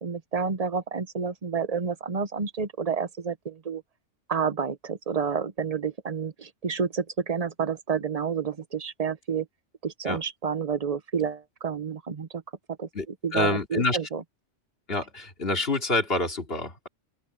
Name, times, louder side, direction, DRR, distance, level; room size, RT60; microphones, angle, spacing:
voice 1, 0.0-3.8 4.3-9.5 9.8-12.4 12.8-12.9 13.2-14.2, right 6 dB, 35° right, 1.0 m, -29 dB
voice 2, 13.3-14.0 14.9-16.9, left 2 dB, 55° left, 3.0 m, -27 dB
open air
omnidirectional pair, 1.2 m